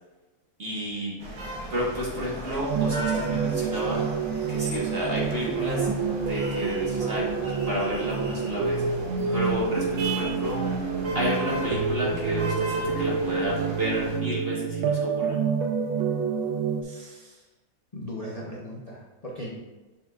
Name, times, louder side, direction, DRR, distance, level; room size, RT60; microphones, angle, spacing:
voice 1, 0.6-1.1 1.7-4.1 4.5-5.9 6.2-8.8 9.3-10.7 11.1-15.4, equal, 35° right, -5 dB, 1.6 m, -31 dB
sound 1, 1.2-14.2, right 2 dB, 55° right, 1.9 m, -37 dB
sound 2, 2.7-16.8, right 5 dB, 90° right, 1.4 m, -28 dB
voice 2, 16.8-17.4 17.9-19.5, equal, 35° left, -4 dB, 0.6 m, -38 dB
7.4 x 6.1 x 2.5 m, 1.2 s
omnidirectional pair, 2.1 m